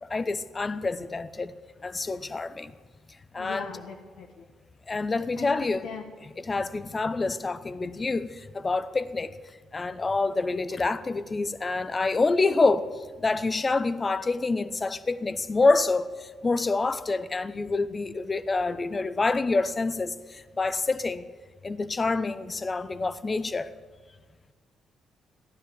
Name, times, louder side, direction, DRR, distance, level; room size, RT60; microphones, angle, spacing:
voice 1, 0.0-1.5 1.8-2.7 3.3-3.7 4.9-5.9 6.2-9.4 9.7-21.2 21.6-23.7, left 3 dB, 25° left, 0.7 m, -27 dB
voice 2, 3.4-4.4 5.4-6.0, left 7 dB, 90° left, 1.3 m, -40 dB
15.5 x 11.5 x 7.7 m
cardioid pair, 125°, 0 cm